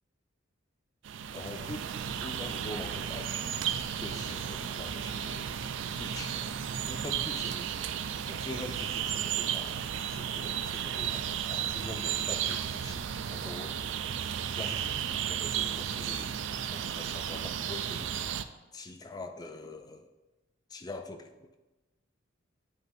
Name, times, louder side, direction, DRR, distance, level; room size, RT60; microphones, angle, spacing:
sound 1, 1.0-18.4, right 9 dB, 65° right, 0.4 m, -34 dB
voice 1, 1.3-6.4 6.9-9.8 10.1-14.1 14.5-18.3 18.7-20.1 20.7-21.6, left 2 dB, 20° left, 7 dB, 0.4 m, -44 dB
9.6 x 5.5 x 2.6 m, 1.1 s
head